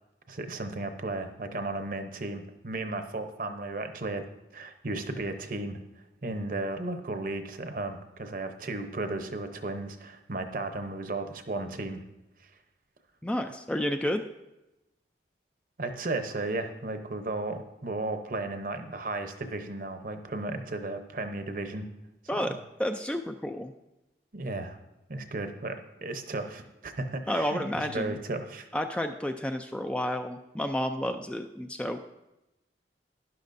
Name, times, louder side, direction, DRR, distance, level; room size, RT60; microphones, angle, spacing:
voice 1, 0.3-4.2 4.5-5.8 6.2-12.0 12.4-12.5 15.8-21.9 22.4-22.6 24.3-24.8 25.1-28.7, right 2 dB, 50° right, 7 dB, 0.8 m, -34 dB
voice 2, 13.2-14.2 22.3-23.7 27.3-28.2 28.7-32.0, left 1 dB, 5° left, 6 dB, 0.3 m, -31 dB
12.0 x 11.0 x 2.6 m, 0.96 s
head